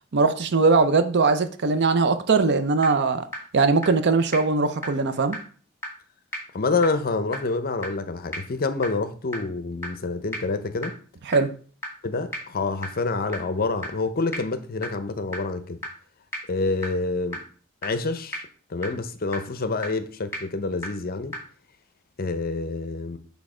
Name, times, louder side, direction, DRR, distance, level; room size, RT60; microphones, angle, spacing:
voice 1, 0.1-3.3 3.5-5.4 11.3-11.5, right 4 dB, 55° right, 0.6 m, -20 dB
sound 1, 2.8-2.9 3.3-3.4 3.8-3.9 4.3-4.4 4.8-4.9 5.3-5.4 5.8-5.9 6.3-6.4 6.8-6.9 7.3-7.4 7.8-7.9 8.3-8.4 8.8-8.9 9.3-9.4 9.8-9.9 10.3-10.4 10.8-10.9 11.3-11.4 11.8-11.9 12.3-12.4 12.8-12.9 13.3-13.4 13.8-13.9 14.3-14.4 14.8-14.9 15.3-15.4 15.8-15.9 16.3-16.4 16.8-16.9 17.3-17.4 17.8-17.9 18.3-18.4 18.8-18.9 19.3-19.4 19.8-19.9 20.3-20.4 20.8-20.9 21.3-21.4, left 1 dB, 10° left, 2.0 m, -31 dB
voice 2, 6.5-10.9 12.0-15.8 16.5-17.4 17.8-21.3 22.2-23.2, left 3 dB, 45° left, 0.6 m, -27 dB
6.3 x 3.5 x 4.9 m
head